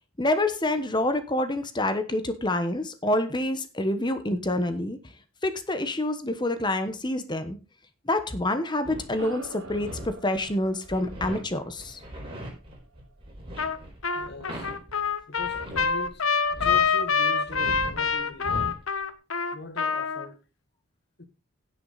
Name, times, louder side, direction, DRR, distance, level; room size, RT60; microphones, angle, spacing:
voice 1, 0.2-5.0 5.4-7.6 8.0-12.0, left 1 dB, 20° left, 1.1 m, -27 dB
sound 1, 8.8-16.2 16.4-17.1 17.5-18.9, equal, 25° right, 4.5 m, -39 dB
sound 2, 9.1-13.9, right 1 dB, 60° right, 2.1 m, -47 dB
Trumpet, 13.6-13.8 14.0-20.3, left 5 dB, 75° left, 1.1 m, -26 dB
voice 2, 14.1-14.7 15.3-18.7 19.5-20.4 21.2-21.3, left 2 dB, 50° left, 1.7 m, -41 dB
17.0 x 6.1 x 4.0 m
head